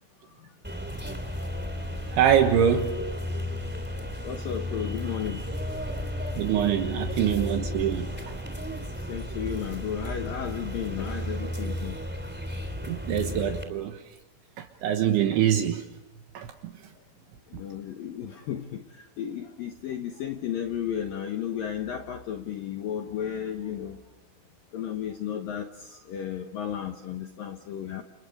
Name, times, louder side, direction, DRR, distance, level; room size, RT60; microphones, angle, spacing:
sound 1, 0.6-13.6, left 1 dB, 5° right, 2.0 m, -33 dB
voice 1, 2.1-3.0 6.4-8.3 12.9-14.0 14.6-15.9 16.4-16.7, right 9 dB, 75° right, 5 dB, 3.5 m, -24 dB
voice 2, 4.2-5.4 6.6-6.9 9.1-12.0 17.5-24.0 24.7-28.0, left 9 dB, 75° left, 5 dB, 2.1 m, -34 dB
30.0 x 29.5 x 5.0 m, 1.0 s
omnidirectional pair, 5.7 m